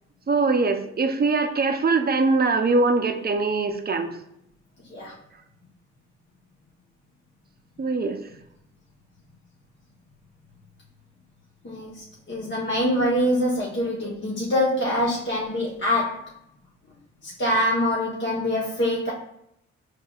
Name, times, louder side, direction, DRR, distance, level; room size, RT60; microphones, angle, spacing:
voice 1, 0.3-4.1 7.8-8.2, right 3 dB, 30° right, 6 dB, 0.6 m, -22 dB
voice 2, 11.6-16.3 17.2-19.1, left 1 dB, 35° left, -5 dB, 1.1 m, -24 dB
4.7 x 3.3 x 2.4 m, 0.77 s
supercardioid pair, 40°, 31 cm